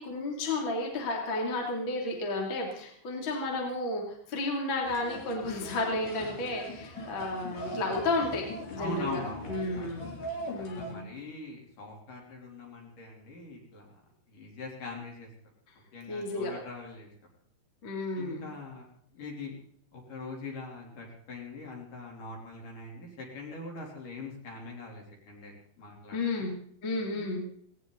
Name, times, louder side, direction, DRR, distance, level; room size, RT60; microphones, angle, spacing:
voice 1, 0.0-4.0 4.3-9.2 9.5-10.1 10.5-11.1 16.1-16.5 17.8-18.5 26.1-26.6 26.8-27.5, left 2 dB, 30° left, -1 dB, 3.1 m, -32 dB
sound 1, 4.8-10.9, equal, 65° left, 5.0 m, -41 dB
voice 2, 8.8-9.9 10.6-14.0 14.3-15.3 15.9-17.1 18.1-18.9 19.1-19.5 19.9-26.5 27.1-27.3, left 3 dB, 50° left, -1 dB, 4.6 m, -42 dB
18.5 x 18.0 x 4.0 m, 0.63 s
omnidirectional pair, 5.2 m